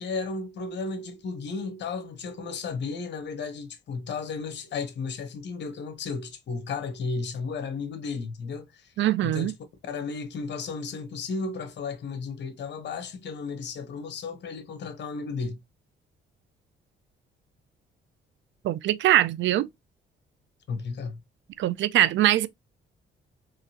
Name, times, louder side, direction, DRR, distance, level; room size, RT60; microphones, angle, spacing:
voice 1, 0.0-9.5 9.9-15.6 20.7-21.2, left 4 dB, 60° left, 1.2 m, -34 dB
voice 2, 9.0-9.5 18.6-19.7 21.6-22.5, right 13 dB, 70° right, 0.4 m, -22 dB
3.8 x 3.1 x 2.8 m
cardioid pair, 90°, 20 cm